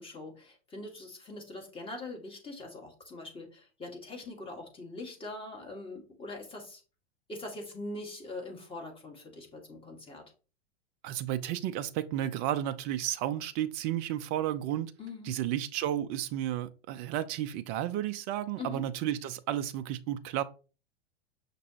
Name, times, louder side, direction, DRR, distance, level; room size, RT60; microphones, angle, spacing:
voice 1, 0.0-6.8 7.3-10.3 15.0-15.4 18.6-18.9, left 2 dB, 15° left, 1.4 m, -42 dB
voice 2, 11.0-14.9 15.2-20.4, right 12 dB, 30° right, 0.4 m, -32 dB
5.9 x 3.0 x 2.8 m
hypercardioid pair, 105°, 33 cm